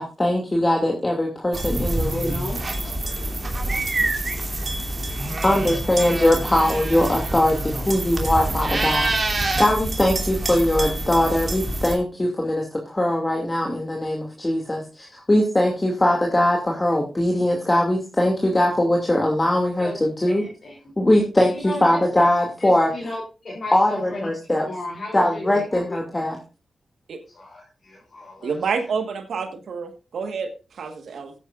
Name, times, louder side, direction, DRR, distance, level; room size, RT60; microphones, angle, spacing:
voice 1, 0.0-2.3 5.4-20.4 21.0-22.9 23.7-24.7 25.1-26.4, left 1 dB, 20° left, 0 dB, 2.5 m, -21 dB
sound 1, 1.5-11.9, right 2 dB, 40° right, 2.8 m, -26 dB
voice 2, 2.1-3.0 19.8-19.9 20.3-20.8 21.5-22.0 22.6-24.3 24.6-26.2 27.3-28.6, left 2 dB, 55° left, -4 dB, 3.7 m, -35 dB
voice 3, 28.4-31.3, right 5 dB, 75° right, 7 dB, 1.5 m, -28 dB
16.0 x 9.3 x 2.5 m, 0.33 s
cardioid pair, 60°, 0 cm